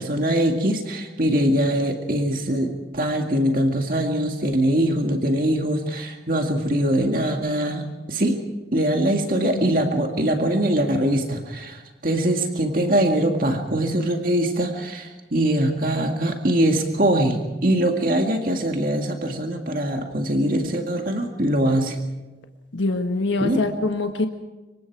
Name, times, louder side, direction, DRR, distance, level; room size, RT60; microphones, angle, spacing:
voice 1, 0.0-8.4 8.7-22.0 23.4-23.6, right 1 dB, 50° right, 3 dB, 2.1 m, -22 dB
voice 2, 22.7-24.3, left 2 dB, 90° left, 4 dB, 1.5 m, -24 dB
26.5 x 24.0 x 4.7 m, 1.1 s
head